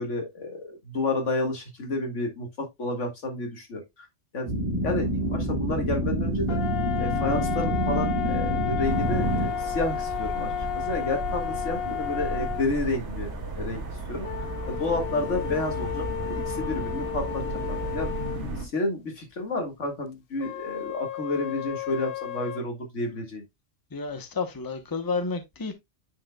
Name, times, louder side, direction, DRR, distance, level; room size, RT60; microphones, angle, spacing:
voice 1, 0.0-4.1 4.3-4.5 4.8-6.6 7.0-13.8 14.1-14.3 14.6-17.4 17.7-18.1 18.6-23.4, left 2 dB, 90° left, 2.1 m, -30 dB
sound 1, 4.5-9.5, right 1 dB, 30° right, 1.6 m, -27 dB
sound 2, 6.5-12.7 14.2-18.5 20.4-22.6, left 11 dB, 60° left, 0.8 m, -33 dB
sound 3, 8.8-18.7, right 2 dB, 75° right, 2.2 m, -34 dB
voice 2, 23.9-25.7, left 4 dB, 20° left, 0.9 m, -31 dB
9.0 x 5.4 x 2.3 m
omnidirectional pair, 1.2 m